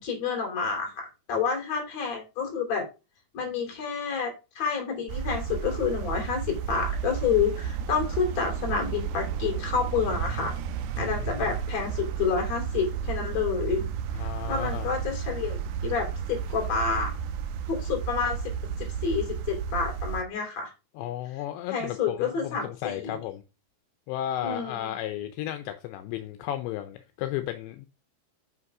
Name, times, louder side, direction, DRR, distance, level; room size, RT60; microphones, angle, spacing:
voice 1, 0.0-2.9 3.3-10.5 11.0-13.9 14.2-17.1 17.7-18.4 18.8-20.7 21.7-23.2 24.4-24.9, left 6 dB, 40° left, 4.0 m, -29 dB
sound 1, 5.1-20.2, right 7 dB, 85° right, 2.9 m, -32 dB
voice 2, 11.0-11.5 14.1-14.9 21.0-23.4 24.1-27.9, left 12 dB, 80° left, 2.8 m, -34 dB
8.2 x 5.8 x 4.8 m
omnidirectional pair, 5.1 m